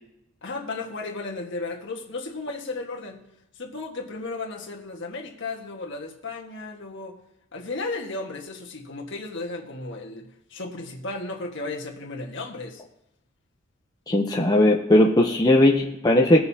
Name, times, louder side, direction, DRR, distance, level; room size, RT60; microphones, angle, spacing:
voice 1, 0.4-3.2 3.5-7.2 7.5-12.8, left 3 dB, 60° left, 0 dB, 1.5 m, -34 dB
voice 2, 14.1-16.4, left 1 dB, 20° left, -1 dB, 0.7 m, -18 dB
20.0 x 6.7 x 2.8 m, 0.83 s
head